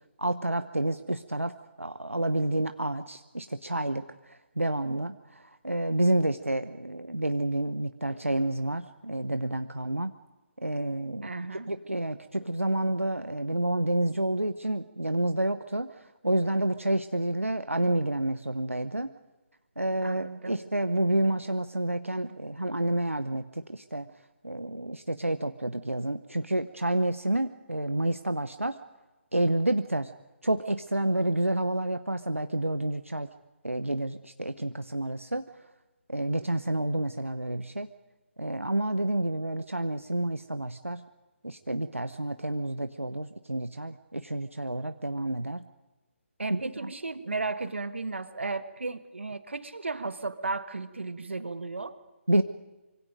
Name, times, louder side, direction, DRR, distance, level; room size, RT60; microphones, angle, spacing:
voice 1, 0.2-10.1 10.6-11.3 11.7-15.9 16.2-19.1 19.8-24.0 24.4-28.8 29.3-30.1 30.4-33.3 33.6-35.4 36.1-37.9 38.4-41.0 41.4-45.7 46.5-46.9 52.3-52.4, right 1 dB, 90° right, 9 dB, 0.9 m, -29 dB
voice 2, 11.2-11.7 20.0-20.7 46.4-52.0, right 3 dB, 65° right, 11 dB, 1.5 m, -34 dB
25.5 x 24.5 x 5.2 m, 1.1 s
figure-of-eight pair, 145°, 7 cm